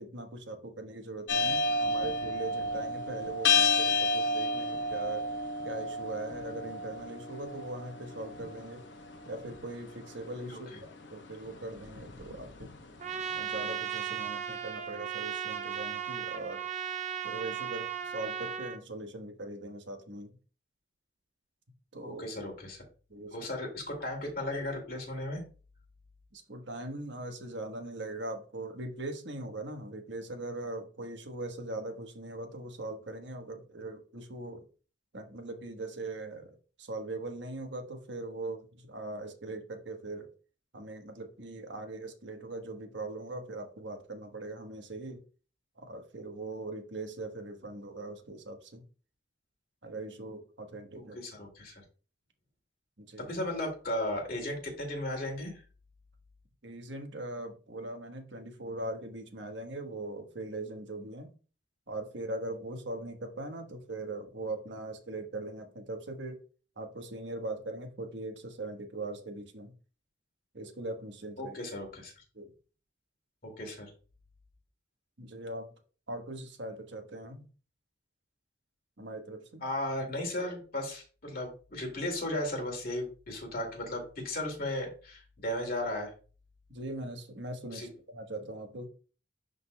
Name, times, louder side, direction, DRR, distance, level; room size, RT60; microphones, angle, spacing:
voice 1, 0.0-5.3 5.6-8.8 9.2-12.7 13.4-16.6 17.2-20.3 21.9-22.2 23.1-23.4 26.3-34.6 35.1-40.3 40.7-45.2 45.8-48.8 49.8-51.2 53.0-53.3 56.6-61.3 61.9-66.4 66.8-69.7 70.5-71.6 72.3-72.5 75.2-75.7 76.1-77.5 79.0-79.6 86.7-88.9, right 2 dB, 75° right, 5 dB, 1.2 m, -40 dB
sound 1, 1.3-13.4, left 3 dB, 75° left, 1.0 m, -32 dB
Trumpet, 13.0-18.8, right 9 dB, 35° right, 0.4 m, -36 dB
voice 2, 22.0-22.9 23.3-25.4 51.0-51.7 53.2-55.6 71.4-72.1 73.4-73.9 79.6-86.1 87.7-87.9, left 1 dB, 50° left, 1 dB, 2.3 m, -35 dB
11.5 x 4.0 x 2.2 m, 0.36 s
head